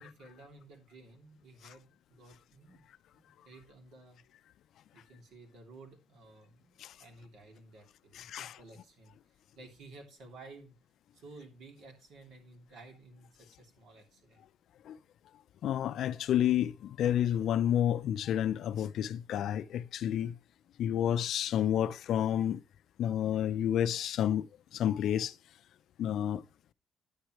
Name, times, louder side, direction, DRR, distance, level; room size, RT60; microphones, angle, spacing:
voice 1, 0.0-2.8 3.1-4.2 4.9-10.7 11.1-14.4, right 2 dB, 75° right, 3.0 m, -54 dB
voice 2, 8.1-8.6 14.9-15.0 15.6-20.4 20.8-22.6 23.0-25.3 26.0-26.4, left 10 dB, 65° left, 0.5 m, -30 dB
10.0 x 8.9 x 3.1 m
cardioid pair, 135°, 0 cm